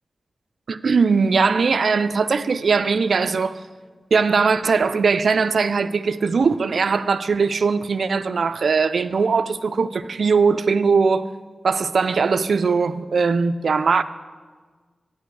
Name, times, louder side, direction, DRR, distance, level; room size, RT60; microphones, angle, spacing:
voice 1, 0.7-3.6 4.1-11.3 11.6-14.0, right 5 dB, 75° right, 0.3 m, -20 dB
9.4 x 8.7 x 4.6 m
wide cardioid pair, 100°, 0 cm